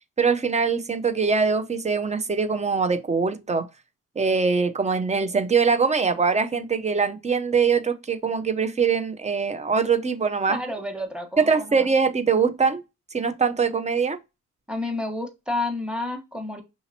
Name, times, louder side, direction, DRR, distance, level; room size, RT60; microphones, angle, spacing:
voice 1, 0.2-3.7 4.2-10.6 11.4-12.8 13.1-14.2, right 5 dB, 25° right, 0.7 m, -22 dB
voice 2, 10.5-11.9 14.7-16.6, left 2 dB, 5° right, 1.3 m, -30 dB
5.9 x 2.8 x 2.8 m
cardioid pair, 90°, 30 cm